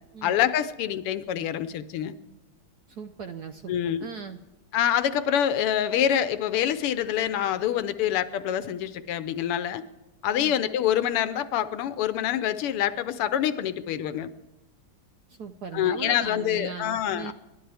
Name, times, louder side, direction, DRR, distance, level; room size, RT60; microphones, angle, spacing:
voice 1, 0.2-2.2 3.7-4.1 4.7-9.8 10.2-14.3 15.7-17.3, left 10 dB, 85° left, 12 dB, 1.8 m, -26 dB
voice 2, 2.9-4.4 10.3-10.5 15.3-17.3, right 5 dB, 65° right, 8 dB, 1.0 m, -39 dB
30.0 x 12.0 x 3.4 m, 1.1 s
omnidirectional pair, 2.4 m